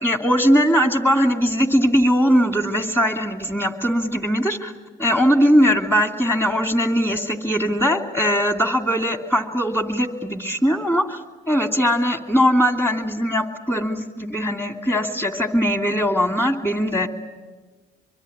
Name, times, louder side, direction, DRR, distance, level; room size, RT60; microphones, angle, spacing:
voice 1, 0.0-4.7 5.0-11.2 11.5-17.1, equal, 10° left, 7 dB, 2.8 m, -20 dB
24.5 x 24.0 x 9.9 m, 1.3 s
cardioid pair, 90°, 20 cm